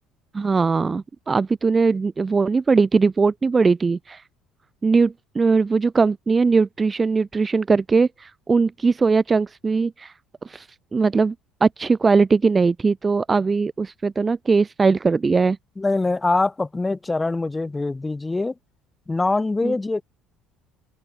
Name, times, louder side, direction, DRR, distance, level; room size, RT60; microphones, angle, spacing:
voice 1, 0.3-4.2 4.8-10.1 10.4-10.7 10.9-11.3 11.6-15.6 19.6-19.7, right 4 dB, 20° right, 2.4 m, -20 dB
voice 2, 15.8-18.5 19.1-20.0, left 3 dB, 15° left, 6.1 m, -23 dB
open air
cardioid pair, 125°, 0 cm